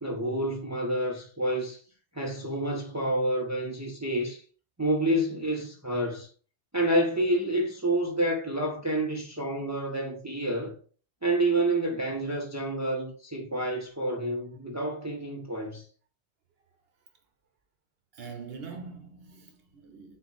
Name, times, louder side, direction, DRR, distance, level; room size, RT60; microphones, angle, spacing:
voice 1, 0.0-1.8 2.1-4.4 4.8-6.3 6.7-10.7 11.2-15.8, right 1 dB, 20° right, 0.6 m, -28 dB
voice 2, 18.1-20.2, right 5 dB, 65° right, 1.1 m, -43 dB
4.3 x 2.3 x 4.3 m
omnidirectional pair, 1.1 m